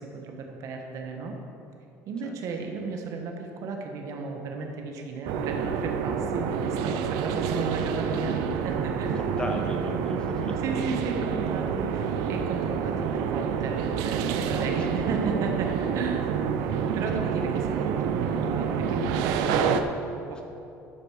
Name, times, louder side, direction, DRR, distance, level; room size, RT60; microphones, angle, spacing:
voice 1, 0.0-1.3 2.1-9.2 10.6-16.3 16.9-20.4, right 3 dB, 60° right, 2 dB, 1.3 m, -34 dB
sound 1, 5.3-19.8, right 7 dB, 85° right, 0.6 m, -28 dB
voice 2, 9.1-10.6 12.2-12.3 20.3-20.4, left 1 dB, 15° left, 2 dB, 1.3 m, -36 dB
11.5 x 6.8 x 5.0 m, 2.8 s
cardioid pair, 110°, 6 cm